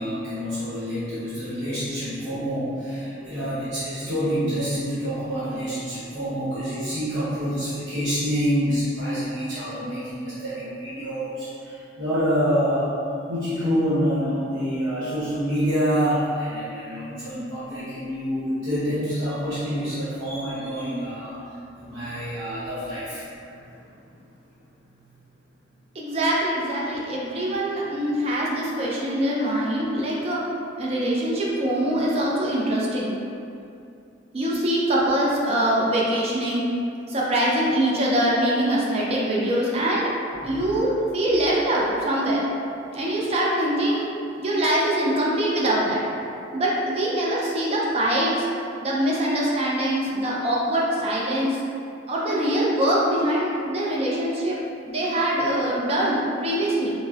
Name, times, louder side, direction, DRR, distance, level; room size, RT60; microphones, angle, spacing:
voice 1, 0.0-12.9 13.3-21.4 21.7-23.8 27.3-27.4 40.5-40.6, equal, 75° right, -12 dB, 0.9 m, -27 dB
voice 2, 25.9-30.4 30.8-33.1 34.3-36.6 37.1-40.1 40.4-42.4 42.9-44.1 44.3-46.0 46.5-48.5 48.8-51.6 52.1-54.6 54.9-56.9, right 1 dB, 35° right, -5 dB, 0.5 m, -23 dB
4.0 x 2.0 x 2.4 m, 2.5 s
head